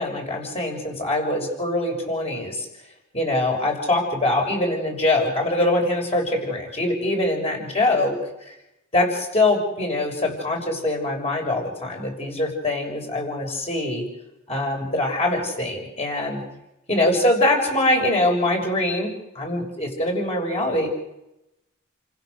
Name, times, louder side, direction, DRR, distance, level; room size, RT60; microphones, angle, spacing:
voice 1, 0.0-2.7 3.1-8.1 8.9-14.0 14.5-16.4 16.9-20.9, left 1 dB, 30° left, 1 dB, 6.4 m, -23 dB
30.0 x 16.0 x 6.7 m, 0.89 s
head